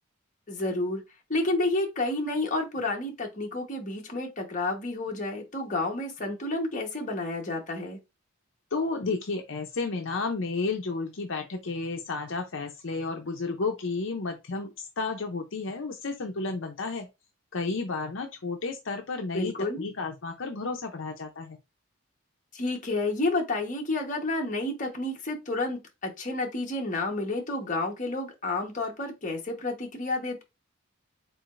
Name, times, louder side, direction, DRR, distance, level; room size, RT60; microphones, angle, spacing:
voice 1, 0.5-1.0 1.3-8.0 19.3-19.8 22.5-30.4, left 2 dB, 35° left, 1.2 m, -30 dB
voice 2, 8.7-17.1 17.5-21.6, left 3 dB, 65° left, 0.7 m, -32 dB
4.8 x 4.0 x 2.5 m
head